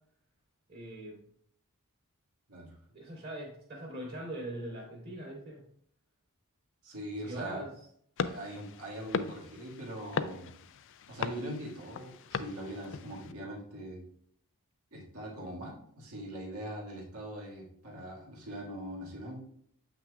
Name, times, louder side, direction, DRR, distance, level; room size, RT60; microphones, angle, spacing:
voice 1, 0.7-1.2 2.9-5.6 7.2-7.7, right 1 dB, 45° right, -8 dB, 2.7 m, -41 dB
voice 2, 6.8-7.6 8.2-10.5 11.1-14.0 14.9-19.4, right 1 dB, 70° right, -2 dB, 2.0 m, -42 dB
sound 1, 8.2-13.3, left 6 dB, 60° left, 0.4 m, -38 dB
8.0 x 5.9 x 2.4 m, 0.67 s
head